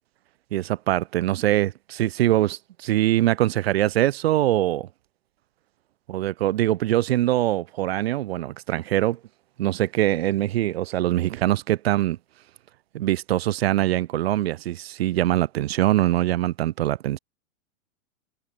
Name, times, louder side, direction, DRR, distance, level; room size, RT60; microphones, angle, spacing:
voice 1, 0.5-4.9 6.1-9.2 9.6-12.2 12.9-17.2, right 14 dB, 50° right, 6.1 m, -23 dB
supercardioid pair, 180°, 40 cm